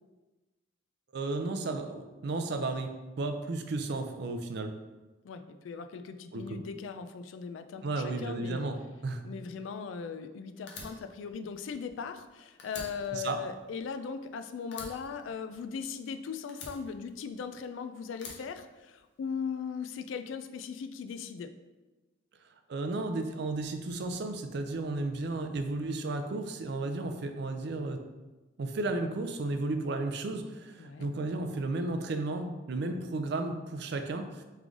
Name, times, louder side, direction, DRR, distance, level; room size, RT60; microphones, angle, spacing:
voice 1, 1.1-2.9 3.2-4.7 6.3-6.6 7.8-8.8 9.0-9.2 13.1-13.4 22.7-28.0 28.6-34.4, right 2 dB, 60° right, 7 dB, 0.4 m, -33 dB
voice 2, 5.2-8.7 9.2-21.5 30.8-31.1, left 6 dB, 90° left, 9 dB, 0.3 m, -39 dB
Fire, 10.7-12.3 12.6-14.3 14.7-16.0 16.5-17.6 18.1-19.3, left 3 dB, 65° left, 0.7 m, -47 dB
3.7 x 3.2 x 3.7 m, 1.2 s
head